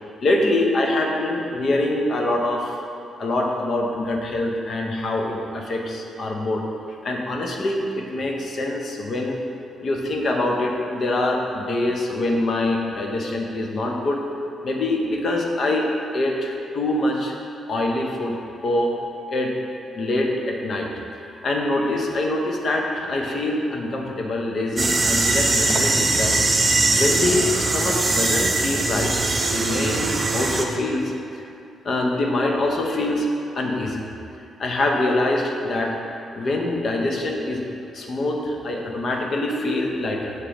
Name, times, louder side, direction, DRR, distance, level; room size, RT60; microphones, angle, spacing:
voice 1, 0.2-2.8 3.2-6.6 7.0-9.4 9.8-14.2 14.6-17.4 17.7-18.4 18.6-18.9 19.3-19.5 19.9-20.9 21.3-26.4 26.9-31.1 31.8-33.3 33.5-34.1 34.6-35.9 36.3-37.6 37.9-40.3, left 2 dB, 45° left, 1 dB, 0.6 m, -24 dB
sound 1, 24.8-30.6, right 2 dB, 25° right, 0.4 m, -21 dB
6.5 x 3.0 x 5.0 m, 2.6 s
cardioid pair, 140°, 0 cm